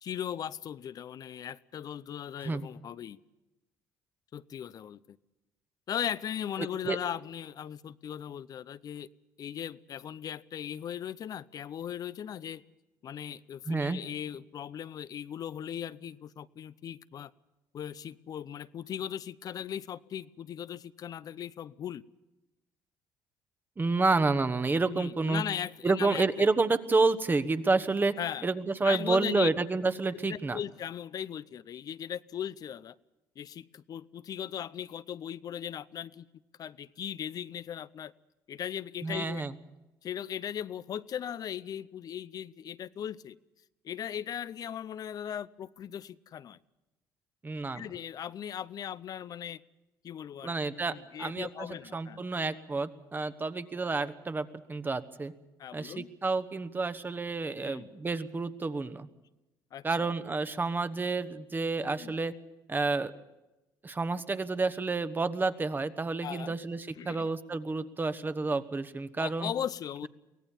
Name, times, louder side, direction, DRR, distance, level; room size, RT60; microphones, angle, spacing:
voice 1, 0.0-3.2 4.3-5.2 5.9-9.1 9.4-12.6 13.0-17.3 17.7-22.0 24.9-26.5 28.2-28.5 28.8-29.5 30.2-32.9 33.4-36.2 36.6-38.1 38.5-39.4 40.0-43.4 43.8-46.6 47.7-49.6 50.0-50.5 50.9-52.2 55.6-56.1 57.6-57.9 59.7-60.1 61.9-62.2 66.2-66.5 66.9-67.3 69.2-70.1, left 9 dB, 55° left, 17 dB, 0.7 m, -38 dB
voice 2, 13.7-14.0 23.8-25.4 25.8-28.1 28.4-30.6 39.0-39.5 47.4-47.9 50.4-51.7 51.9-55.3 55.7-59.1 59.8-62.3 62.7-63.1 63.8-69.5, right 3 dB, 25° right, 12 dB, 1.2 m, -29 dB
23.5 x 17.5 x 7.2 m, 1.0 s
supercardioid pair, 75°, 8 cm